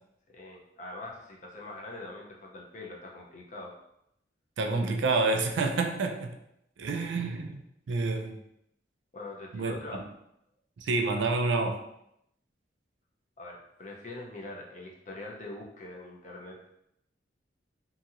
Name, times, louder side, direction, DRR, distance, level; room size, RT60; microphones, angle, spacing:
voice 1, 0.3-3.8 6.9-7.1 9.1-10.1 13.4-16.7, left 2 dB, 40° left, -2 dB, 0.6 m, -43 dB
voice 2, 4.6-6.4 6.8-7.6 7.9-8.4 9.5-9.8 10.8-11.8, right 3 dB, 80° right, 4 dB, 0.4 m, -28 dB
2.8 x 2.7 x 2.5 m, 0.78 s
head